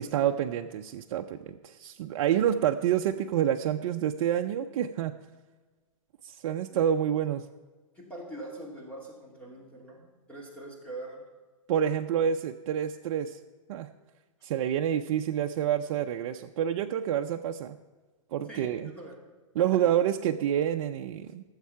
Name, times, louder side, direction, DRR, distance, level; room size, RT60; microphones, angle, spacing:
voice 1, 0.0-5.2 6.2-7.5 11.7-13.4 13.7-13.9 14.4-17.8 18.3-18.9 19.6-21.4, right 10 dB, 55° right, 4 dB, 0.6 m, -28 dB
voice 2, 7.9-11.2 18.5-19.2 19.6-19.7, right 1 dB, 10° left, -3 dB, 2.5 m, -43 dB
17.5 x 7.4 x 5.7 m, 1.3 s
hypercardioid pair, 150°, 18 cm